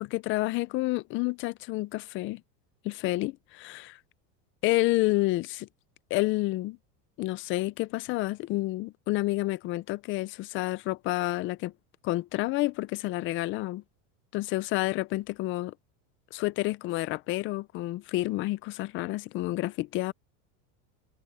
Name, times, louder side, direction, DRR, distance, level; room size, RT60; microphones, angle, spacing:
voice 1, 0.0-2.4 2.8-4.0 4.6-5.7 6.1-6.8 7.2-11.7 12.0-13.8 14.3-15.7 16.3-20.1, left 19 dB, 30° left, 0.4 m, -29 dB
supercardioid pair, 145°, 44 cm